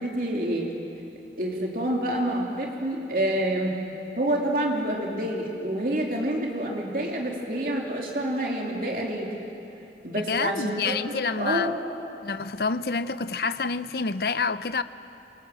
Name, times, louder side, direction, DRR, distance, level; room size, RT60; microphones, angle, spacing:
voice 1, 0.0-0.7 1.4-3.7 4.2-9.3 10.0-11.8, right 1 dB, 50° right, 3.1 m, -28 dB
voice 2, 10.3-11.8 12.2-14.8, left 4 dB, 60° left, 0.7 m, -28 dB
27.0 x 26.5 x 7.7 m
head